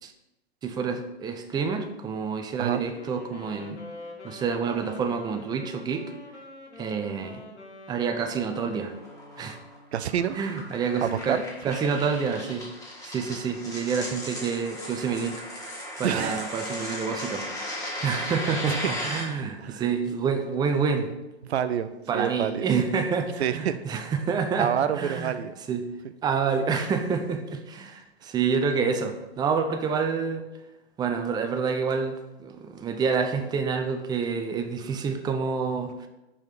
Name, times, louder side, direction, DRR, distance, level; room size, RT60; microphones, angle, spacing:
voice 1, 0.6-3.8 4.2-6.1 6.8-7.4 7.9-8.9 9.4-9.6 10.3-12.7 13.0-15.4 16.0-17.5 18.0-21.1 22.1-24.7 25.0-25.3 25.7-25.9 26.2-30.5 31.0-36.1, right 5 dB, 10° right, 5 dB, 0.5 m, -28 dB
Wind instrument woodwind instrument, 2.8-10.1, left 2 dB, 85° left, 1.4 m, -45 dB
sound 1, 8.5-19.2, left 1 dB, 10° left, 1.7 m, -36 dB
voice 2, 9.9-10.4 11.0-11.4 16.0-16.5 17.9-18.1 18.7-18.9 19.6-19.9 21.4-22.7 23.4-23.8 24.6-25.5, right 9 dB, 75° right, 12 dB, 0.5 m, -28 dB
5.6 x 4.4 x 5.0 m, 0.99 s
figure-of-eight pair, 105°, 33 cm